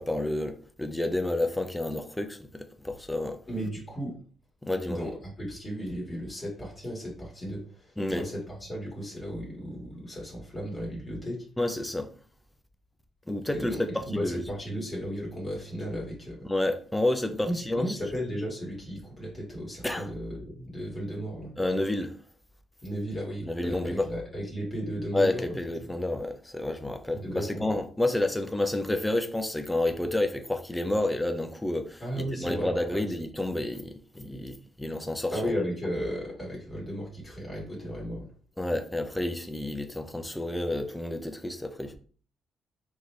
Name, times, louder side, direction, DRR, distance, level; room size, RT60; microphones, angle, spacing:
voice 1, 0.0-3.4 4.6-5.0 8.0-8.3 11.6-12.1 13.3-14.4 16.4-18.0 19.8-20.1 21.6-22.2 23.5-24.1 25.1-35.5 38.6-42.0, left 1 dB, 10° left, 0.6 m, -30 dB
voice 2, 3.5-4.1 4.9-11.5 13.5-16.4 17.4-21.5 22.8-25.5 27.1-27.7 32.0-33.1 35.3-38.2, equal, 25° left, 2.0 m, -35 dB
4.6 x 3.0 x 3.3 m
cardioid pair, 90°, 0 cm